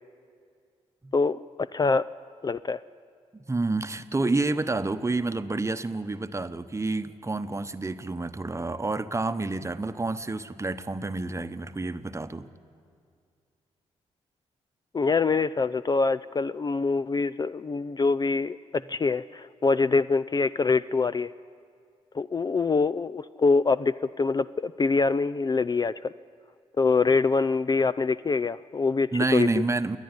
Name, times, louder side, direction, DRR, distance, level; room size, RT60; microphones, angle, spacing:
voice 1, 1.1-2.0 2.4-2.8 14.9-21.3 22.1-26.1 26.8-29.5, left 4 dB, 30° left, 15 dB, 0.4 m, -25 dB
voice 2, 3.3-12.5 29.1-30.0, right 3 dB, 20° right, 10 dB, 1.0 m, -29 dB
27.0 x 10.0 x 9.8 m, 2.2 s
supercardioid pair, 55°, 13 cm